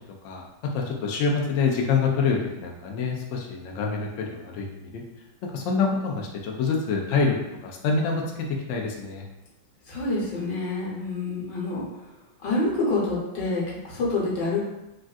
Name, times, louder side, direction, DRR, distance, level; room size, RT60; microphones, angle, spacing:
voice 1, 0.7-5.0 5.4-7.3 7.6-8.2 8.7-9.2, left 5 dB, 90° left, 0 dB, 0.6 m, -26 dB
voice 2, 9.9-11.9 12.4-14.6, left 2 dB, 75° left, -5 dB, 1.5 m, -27 dB
3.5 x 2.5 x 2.3 m, 0.93 s
omnidirectional pair, 2.0 m